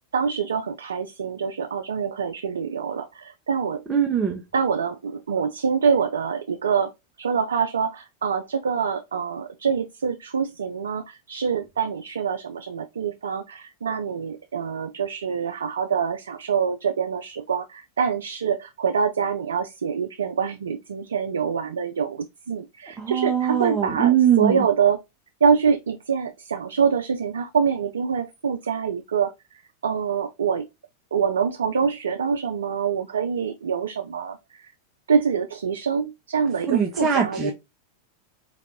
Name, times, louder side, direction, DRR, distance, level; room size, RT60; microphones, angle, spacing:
voice 1, 0.1-3.8 4.5-6.9 7.2-25.0 25.4-30.7 31.1-34.7 35.1-37.5, right 6 dB, 70° right, 0.3 m, -25 dB
voice 2, 3.9-4.4 23.0-24.7 36.7-37.5, right 8 dB, 15° right, 0.7 m, -21 dB
4.5 x 2.5 x 2.7 m
figure-of-eight pair, 90°, 0 cm